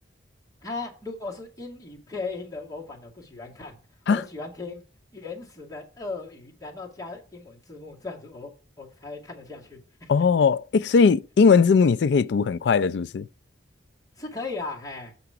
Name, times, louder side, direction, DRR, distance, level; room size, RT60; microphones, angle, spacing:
voice 1, 0.6-3.8 4.1-4.8 5.1-8.5 8.8-10.2 14.2-15.1, left 3 dB, 20° left, 2.2 m, -37 dB
voice 2, 10.1-13.3, left 5 dB, 65° left, 0.3 m, -19 dB
6.9 x 5.7 x 5.0 m
head